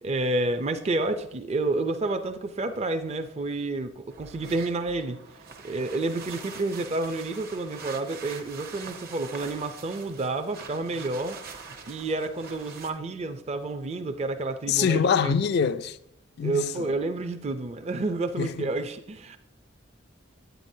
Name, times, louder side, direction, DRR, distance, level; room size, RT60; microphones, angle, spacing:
voice 1, 0.0-5.2 5.6-11.4 11.9-15.3 16.4-19.4, right 2 dB, 35° right, 0.5 m, -29 dB
sound 1, 4.1-12.9, right 5 dB, 50° right, 0.8 m, -44 dB
voice 2, 14.7-16.0 16.4-16.9 18.4-18.7, left 6 dB, 55° left, 0.3 m, -25 dB
9.0 x 8.9 x 2.7 m
head